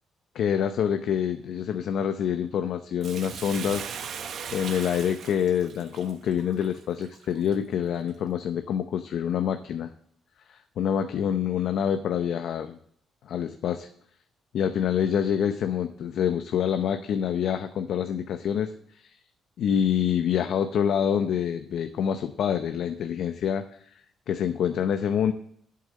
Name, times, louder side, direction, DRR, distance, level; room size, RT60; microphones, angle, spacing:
voice 1, 0.3-9.9 10.5-12.8 13.2-13.9 14.5-19.2 19.6-23.6 24.3-25.3, left 8 dB, 70° left, 8 dB, 0.6 m, -26 dB
Bathtub (filling or washing), 3.0-7.5 8.1-8.2, right 7 dB, 65° right, 0.9 m, -38 dB
8.4 x 7.7 x 7.5 m, 0.67 s
cardioid pair, 90°, 0 cm